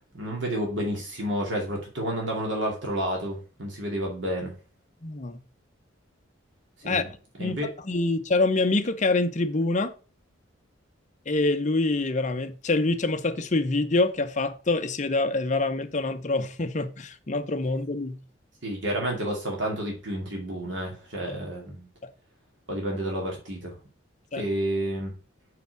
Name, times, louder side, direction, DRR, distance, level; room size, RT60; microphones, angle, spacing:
voice 1, 0.1-4.5 6.8-7.1 7.4-7.7 18.6-21.9 22.7-23.7 24.4-25.1, right 1 dB, 65° right, 2.5 m, -30 dB
voice 2, 5.0-5.4 6.8-7.6 7.9-9.9 11.3-18.2 21.3-21.4 22.0-22.1 24.3-24.4, left 2 dB, 40° left, 0.7 m, -26 dB
5.8 x 4.9 x 6.5 m
head